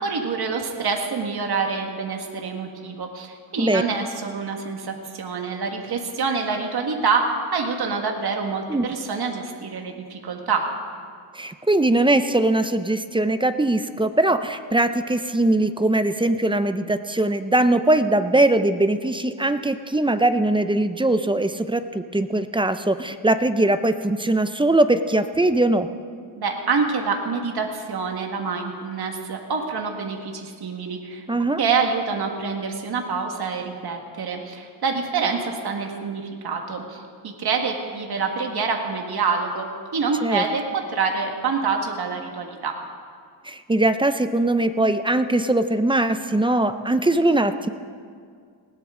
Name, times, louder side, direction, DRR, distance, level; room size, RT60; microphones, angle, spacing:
voice 1, 0.0-10.7 26.4-31.2 31.6-42.8, right 5 dB, 50° right, 3 dB, 1.8 m, -26 dB
voice 2, 11.3-25.9 31.3-31.6 40.2-40.4 43.5-47.7, right 1 dB, 10° right, 10 dB, 0.5 m, -21 dB
19.5 x 17.0 x 3.8 m, 2.1 s
wide cardioid pair, 130°, 48 cm